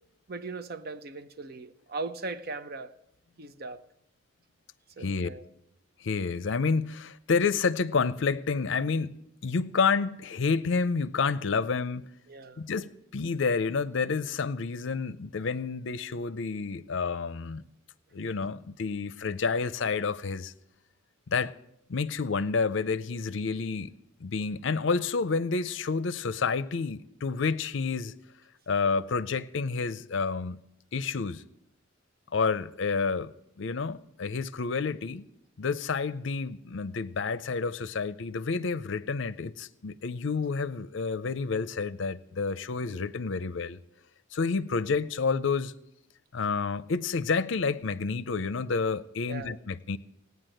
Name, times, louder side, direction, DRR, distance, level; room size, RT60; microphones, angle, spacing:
voice 1, 0.3-2.9 3.4-3.8 5.0-5.5 12.3-12.6 49.3-49.6, right 3 dB, 50° right, 0.7 m, -39 dB
voice 2, 6.0-12.1 12.6-17.6 18.1-20.5 21.3-21.5 21.9-24.0 24.2-28.1 28.7-30.6 30.9-31.4 32.3-33.3 33.6-35.2 35.6-43.8 44.3-45.7 46.3-50.0, left 4 dB, 60° left, 0.5 m, -29 dB
17.0 x 9.4 x 7.8 m
head